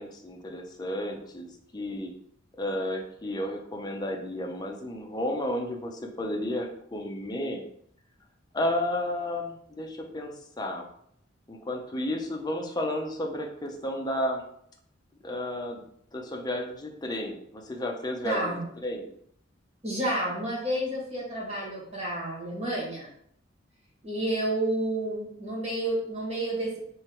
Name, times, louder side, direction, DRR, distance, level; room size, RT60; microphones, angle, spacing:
voice 1, 0.0-2.1 2.6-7.6 8.5-10.9 11.5-14.4 15.2-15.8 16.1-19.1, left 1 dB, 20° left, 1 dB, 0.7 m, -32 dB
voice 2, 18.2-18.6 19.8-23.1 24.0-26.8, right 1 dB, 35° right, -5 dB, 1.7 m, -30 dB
3.5 x 3.3 x 4.4 m, 0.66 s
head